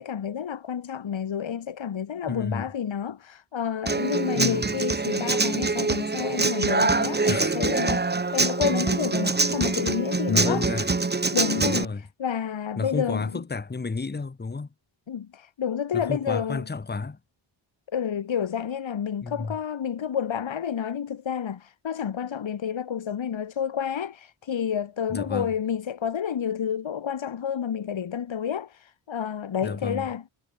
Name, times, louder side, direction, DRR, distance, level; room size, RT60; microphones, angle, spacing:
voice 1, 0.0-10.7 11.3-13.4 15.1-16.7 17.9-30.2, left 8 dB, 65° left, 2.0 m, -30 dB
voice 2, 2.2-2.7 4.3-4.7 7.3-7.6 10.3-10.9 11.6-12.0 12.8-14.7 15.9-17.2 19.2-19.6 25.1-25.5 29.6-30.1, left 4 dB, 20° left, 1.1 m, -31 dB
Human voice / Acoustic guitar, 3.9-11.8, right 3 dB, 20° right, 1.2 m, -25 dB
wide cardioid pair, 115°, 49 cm